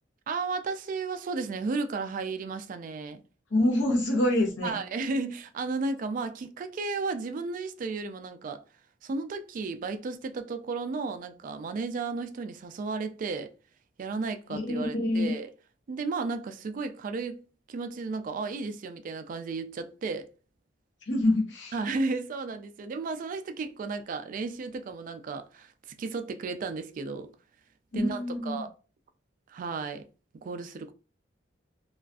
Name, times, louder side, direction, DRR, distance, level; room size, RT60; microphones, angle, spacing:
voice 1, 0.3-3.2 4.6-8.6 9.0-13.5 14.0-15.5 15.9-20.3 21.7-27.3 27.9-28.7 29.5-30.0 30.4-30.9, right 4 dB, 45° right, 0.3 m, -33 dB
voice 2, 3.5-4.8 14.5-15.4 21.1-21.7 27.9-28.6, left 1 dB, 75° left, 0.8 m, -26 dB
2.4 x 2.3 x 2.3 m
head